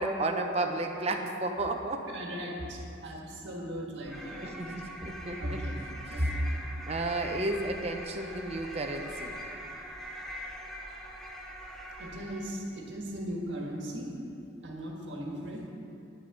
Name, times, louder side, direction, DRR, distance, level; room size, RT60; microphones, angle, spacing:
voice 1, 0.0-2.0 4.4-5.6 6.9-9.4, right 2 dB, 30° right, 4 dB, 0.7 m, -32 dB
voice 2, 2.1-4.5 5.4-5.8 6.1-6.4 12.0-14.1 14.6-15.7, equal, 65° right, -1 dB, 1.7 m, -36 dB
sound 1, 4.0-12.6, equal, ahead, 0.8 m, -42 dB
9.8 x 6.5 x 6.7 m, 2.7 s
head